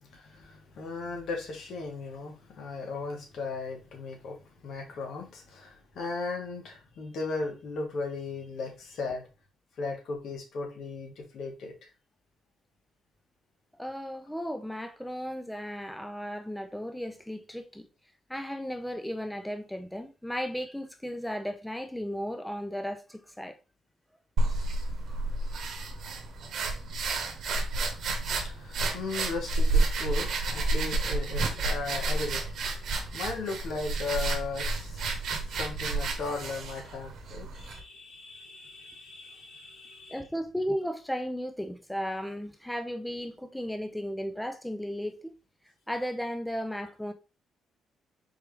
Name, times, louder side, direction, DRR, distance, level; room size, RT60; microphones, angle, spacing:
voice 1, 0.0-9.2 9.8-11.7 28.0-40.2, left 3 dB, 70° left, 1.5 m, -37 dB
voice 2, 13.8-17.9 18.3-23.6 40.1-45.3 45.9-47.1, equal, 5° left, 0.5 m, -35 dB
sound 1, 24.4-37.8, right 2 dB, 65° right, 1.1 m, -30 dB
4.5 x 3.3 x 3.3 m
cardioid pair, 90°, 0 cm